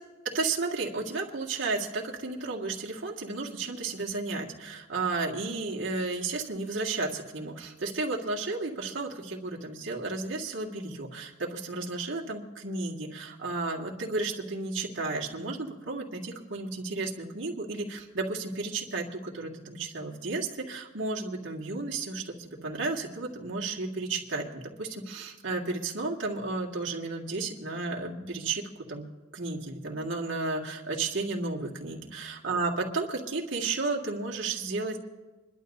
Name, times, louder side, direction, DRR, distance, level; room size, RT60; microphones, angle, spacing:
voice 1, 0.3-29.0 29.3-35.0, right 3 dB, 70° right, -3 dB, 1.9 m, -33 dB
27.5 x 11.5 x 2.7 m, 1.2 s
head